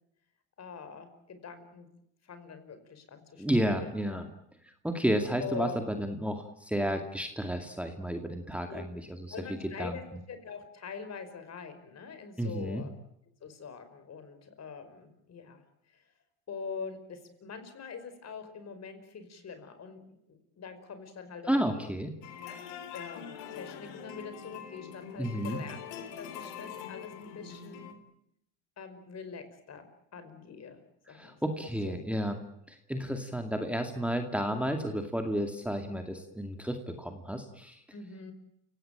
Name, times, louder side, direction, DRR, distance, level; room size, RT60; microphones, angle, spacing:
voice 1, 0.6-1.9 2.2-4.2 5.4-5.8 8.7-8.8 9.3-12.9 13.4-16.0 16.5-20.0 20.3-21.9 22.9-25.8 26.2-28.0 28.8-29.9 30.1-30.8 31.1-31.4 31.8-32.1 37.9-38.3, left 5 dB, 40° left, 10 dB, 5.3 m, -44 dB
voice 2, 3.4-4.3 4.8-9.0 9.8-10.0 12.4-12.8 21.5-22.1 25.2-25.6 31.1-32.4 32.7-37.8, equal, 5° right, 4 dB, 2.3 m, -31 dB
sound 1, 22.2-27.9, left 8 dB, 75° left, 3.3 m, -44 dB
29.0 x 17.5 x 9.0 m, 0.78 s
supercardioid pair, 95°, 40 cm